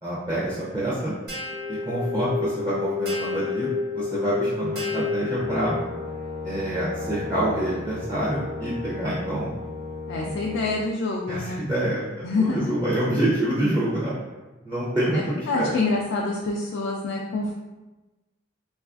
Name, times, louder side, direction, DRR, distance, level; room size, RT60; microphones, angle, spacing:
voice 1, 0.0-1.1 1.7-5.8 6.4-9.5 10.1-10.3 11.3-14.1 14.6-15.7, right 1 dB, 20° right, -9 dB, 0.5 m, -27 dB
sound 1, 1.3-6.1, left 4 dB, 55° right, 1.1 m, -29 dB
Brass instrument, 5.4-10.9, left 3 dB, 40° right, 0.9 m, -35 dB
voice 2, 10.1-11.6 12.2-12.7 15.1-17.5, left 3 dB, 75° left, -2 dB, 0.3 m, -26 dB
3.2 x 2.3 x 2.4 m, 1.1 s
head